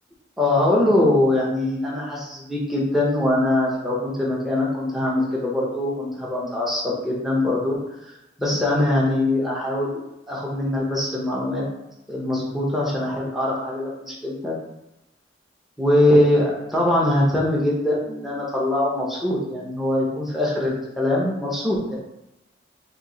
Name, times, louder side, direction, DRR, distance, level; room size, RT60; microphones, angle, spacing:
voice 1, 0.4-7.8 8.0-11.6 12.1-14.5 15.8-22.0, left 1 dB, ahead, -5 dB, 0.6 m, -22 dB
3.0 x 2.7 x 3.8 m, 0.90 s
head